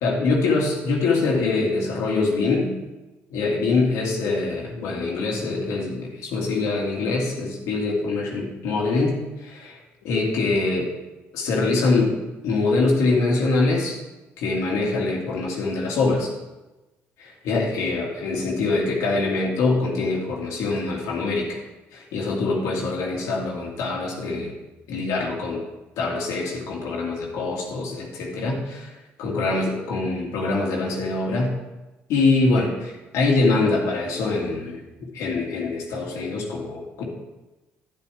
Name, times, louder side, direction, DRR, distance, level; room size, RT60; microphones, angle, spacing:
voice 1, 0.0-2.7 3.3-10.9 11.3-12.1 12.4-14.0 14.4-16.3 17.2-21.6 21.9-24.5 24.9-25.6 26.0-28.9 29.2-31.5 32.1-34.8 35.1-37.0, left 3 dB, 85° left, -2 dB, 2.2 m, -24 dB
9.7 x 9.5 x 3.5 m, 1.1 s
cardioid pair, 85°, 5 cm